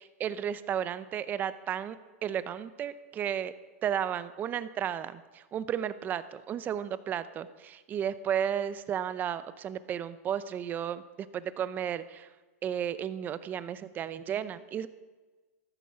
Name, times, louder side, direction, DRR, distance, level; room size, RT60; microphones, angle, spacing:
voice 1, 0.2-3.5 3.8-12.3 12.6-14.9, right 9 dB, 20° right, 14 dB, 0.6 m, -33 dB
14.0 x 14.0 x 5.8 m, 1.3 s
hypercardioid pair, 145°, 8 cm